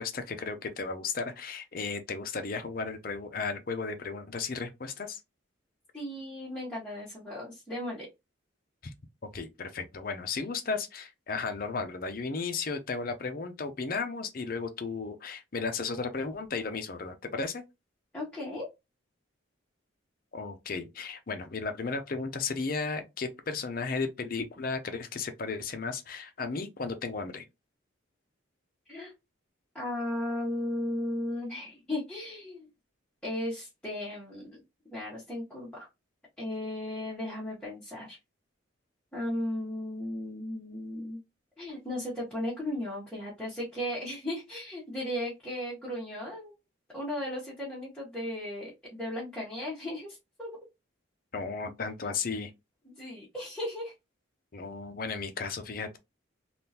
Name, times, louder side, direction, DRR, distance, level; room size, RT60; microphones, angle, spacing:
voice 1, 0.0-5.2 8.8-8.9 9.3-17.6 20.3-27.4 51.3-52.5 54.5-56.0, left 4 dB, 45° left, 0.6 m, -34 dB
voice 2, 5.9-8.1 18.1-18.7 28.9-29.1 29.7-32.7 33.2-34.6 34.9-35.9 36.4-38.2 39.1-41.2 41.6-46.5 46.9-50.6 52.8-53.9, left 1 dB, 5° left, 1.1 m, -36 dB
3.6 x 2.4 x 2.8 m
head